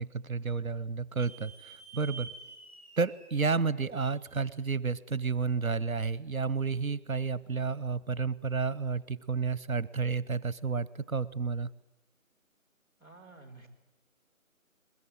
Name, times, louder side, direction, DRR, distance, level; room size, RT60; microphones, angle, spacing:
voice 1, 0.0-2.3 3.0-11.7, right 5 dB, 75° right, 20 dB, 1.0 m, -31 dB
sound 1, 1.2-4.7, right 4 dB, 10° right, 4.0 m, -50 dB
voice 2, 13.0-13.7, right 3 dB, 15° left, -4 dB, 2.7 m, -51 dB
22.0 x 21.5 x 9.1 m, 1.0 s
figure-of-eight pair, 170°, 42 cm